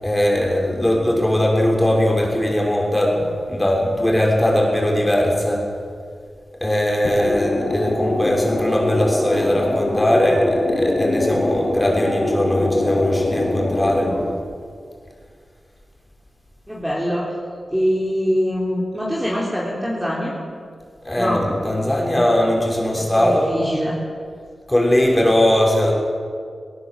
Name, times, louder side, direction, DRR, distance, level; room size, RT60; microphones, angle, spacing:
voice 1, 0.0-5.7 6.6-14.2 21.0-23.6 24.7-25.9, left 1 dB, 15° left, -1 dB, 5.9 m, -19 dB
sound 1, 7.0-14.2, left 1 dB, 40° left, 6.3 m, -23 dB
voice 2, 16.7-17.2 17.7-20.3 21.2-21.4 23.2-23.9, equal, 5° right, -5 dB, 3.9 m, -23 dB
19.0 x 18.5 x 7.8 m, 2.1 s
wide cardioid pair, 75°, 0 cm